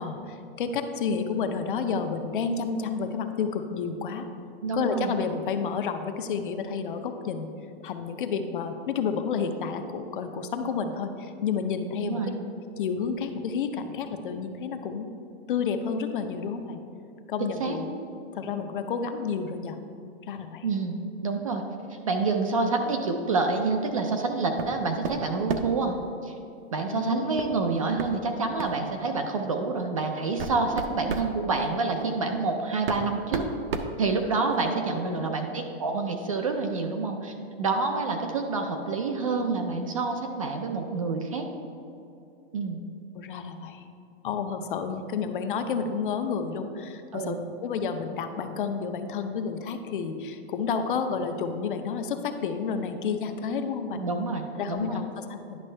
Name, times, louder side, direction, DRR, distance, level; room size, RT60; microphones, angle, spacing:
voice 1, 0.0-4.3 4.7-7.5 7.8-12.2 12.8-15.1 15.5-16.8 17.3-17.9 18.3-19.8 20.3-20.7 26.9-27.3 34.6-35.3 43.1-43.8 44.2-47.3 47.6-54.0 54.6-55.6, left 6 dB, 50° left, 7 dB, 0.6 m, -30 dB
voice 2, 4.6-5.1 12.0-12.3 17.6-17.8 20.6-21.6 21.9-26.0 26.2-26.3 26.7-33.5 34.0-41.5 42.5-42.8 47.1-47.4 53.9-55.1, right 3 dB, 30° right, 4 dB, 0.4 m, -28 dB
sound 1, 24.6-24.8 25.0-25.8 27.4-27.5 28.0-28.1 28.6-28.8 29.6-29.7 30.2-31.3 32.4-32.5 32.9-34.6, right 5 dB, 55° right, 0.7 m, -32 dB
10.5 x 6.1 x 3.3 m, 2.6 s
hypercardioid pair, 175°, 34 cm